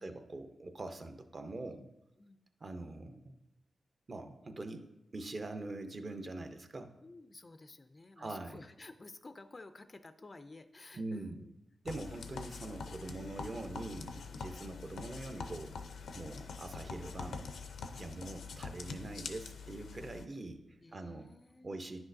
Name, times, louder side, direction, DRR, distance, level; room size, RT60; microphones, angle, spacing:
voice 1, 0.0-1.8 2.6-3.3 4.1-4.9 5.1-6.9 8.2-8.6 10.9-11.3 11.8-15.8 16.1-17.5 17.9-21.3 21.6-22.0, right 2 dB, 35° right, 7 dB, 0.6 m, -43 dB
voice 2, 1.5-1.9 2.2-2.4 7.0-11.5 14.3-14.5 20.8-21.9, left 2 dB, 30° left, 10 dB, 0.3 m, -53 dB
sound 1, 11.9-20.3, left 5 dB, 85° left, 0.5 m, -45 dB
10.0 x 6.1 x 2.6 m, 0.91 s
wide cardioid pair, 110°, 0 cm